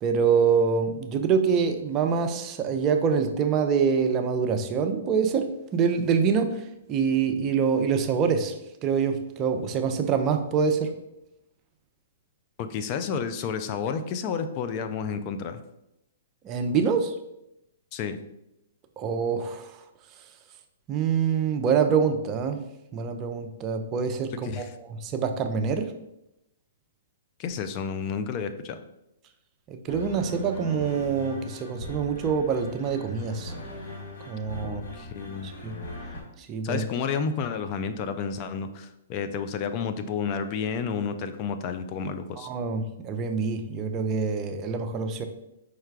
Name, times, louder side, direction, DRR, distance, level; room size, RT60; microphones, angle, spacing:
voice 1, 0.0-5.5 5.7-8.5 8.8-10.9 16.4-17.1 19.0-19.8 20.9-22.6 22.9-25.9 29.7-33.5 34.3-34.8 35.4-35.8 36.5-36.8 42.4-45.3, right 6 dB, 30° right, 6 dB, 0.5 m, -25 dB
voice 2, 12.6-15.6 17.9-18.2 24.4-24.7 27.4-28.8 34.6-35.5 36.6-42.5, left 6 dB, 35° left, 9 dB, 0.3 m, -31 dB
sound 1, 29.9-36.2, left 1 dB, 60° left, 1.4 m, -40 dB
4.8 x 2.2 x 4.6 m, 0.86 s
hypercardioid pair, 135°, 0 cm